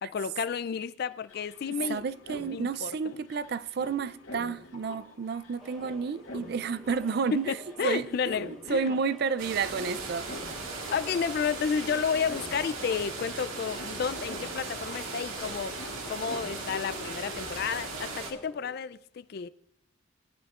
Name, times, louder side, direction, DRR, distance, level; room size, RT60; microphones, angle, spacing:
voice 1, 0.0-2.0 2.5-3.2 7.5-8.9 10.9-15.8 16.1-19.5, left 6 dB, 50° left, 0.3 m, -31 dB
sound 1, 0.7-0.8 1.0-17.8, left 2 dB, 75° left, 1.9 m, -47 dB
voice 2, 1.9-10.3, right 5 dB, 50° right, 0.3 m, -31 dB
sound 2, 5.6-18.8, left 1 dB, ahead, 0.8 m, -52 dB
sound 3, 9.4-18.3, right 3 dB, 85° right, 1.7 m, -38 dB
18.5 x 10.0 x 2.4 m
head